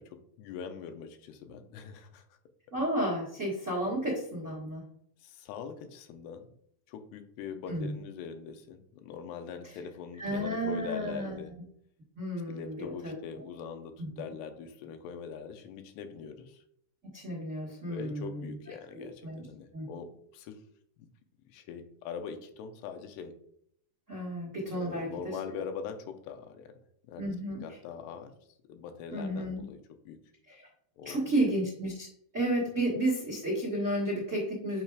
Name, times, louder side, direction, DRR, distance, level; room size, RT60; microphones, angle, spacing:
voice 1, 0.0-2.3 3.8-4.1 5.2-6.5 6.9-11.5 12.5-16.6 17.9-20.6 21.0-21.1 21.5-23.4 24.7-26.8 27.1-27.3 27.6-28.3 28.7-30.2 31.0-31.3, left 6 dB, 85° left, 7 dB, 2.8 m, -42 dB
voice 2, 2.7-4.8 7.7-7.9 10.2-11.4 12.1-13.1 14.0-14.1 17.1-18.4 18.9-19.4 19.7-19.9 24.1-25.6 27.2-27.6 29.1-29.6 30.5-30.6 31.0-32.1 32.3-34.8, right 1 dB, 85° right, -4 dB, 0.6 m, -32 dB
8.6 x 4.7 x 2.4 m, 0.68 s
omnidirectional pair, 4.7 m